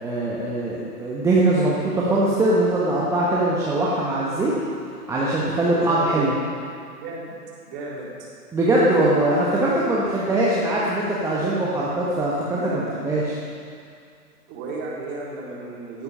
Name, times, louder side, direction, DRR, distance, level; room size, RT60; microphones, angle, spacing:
voice 1, 0.0-4.5 5.1-6.3 8.5-13.3, right 1 dB, 5° right, -6 dB, 1.3 m, -21 dB
voice 2, 5.7-6.3 7.0-7.2 7.7-8.3 12.5-13.0 14.5-16.0, right 3 dB, 20° right, -4 dB, 3.6 m, -33 dB
18.5 x 14.0 x 5.5 m, 2.3 s
figure-of-eight pair, 125°, 48 cm